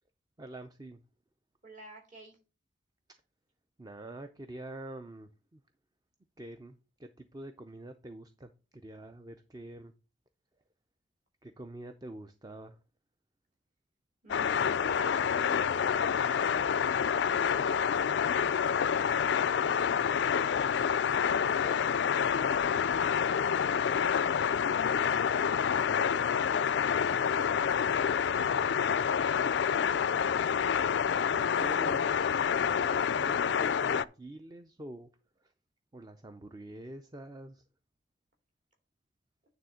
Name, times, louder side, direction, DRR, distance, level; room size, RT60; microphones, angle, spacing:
voice 1, 0.4-1.0 3.8-5.6 6.4-9.9 11.4-12.8 25.0-26.2 28.3-29.0 31.1-32.1 32.6-35.1 35.4-35.5 35.9-37.6, right 1 dB, 20° right, 0.4 m, -46 dB
voice 2, 1.6-2.4 14.2-16.7 17.5-22.5 23.7-24.4 27.1-27.4, right 2 dB, 40° right, 2.5 m, -52 dB
sound 1, 14.3-34.0, left 7 dB, 60° left, 0.3 m, -28 dB
9.4 x 3.6 x 6.3 m
head